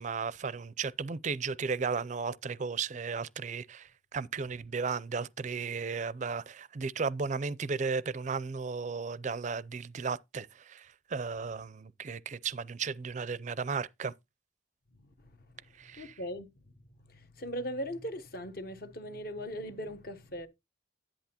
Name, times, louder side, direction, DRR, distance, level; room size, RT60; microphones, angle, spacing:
voice 1, 0.0-14.1 15.8-16.1, right 5 dB, 35° right, 0.4 m, -35 dB
voice 2, 15.0-15.3 16.0-16.5 17.1-20.5, equal, 50° left, 1.0 m, -39 dB
10.5 x 8.6 x 2.9 m
head